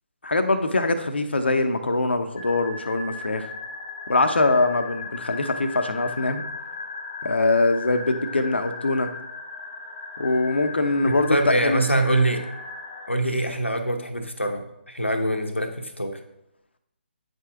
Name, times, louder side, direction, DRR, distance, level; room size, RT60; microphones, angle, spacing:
voice 1, 0.2-3.5 4.1-6.4 7.2-9.1 10.2-11.9, left 2 dB, 65° left, 8 dB, 0.9 m, -23 dB
sound 1, 2.4-13.1, left 4 dB, 20° left, 0.7 m, -37 dB
voice 2, 11.1-12.5 13.1-16.2, right 1 dB, 90° left, 5 dB, 1.1 m, -24 dB
9.0 x 5.3 x 3.6 m, 0.85 s
figure-of-eight pair, 140°, 6 cm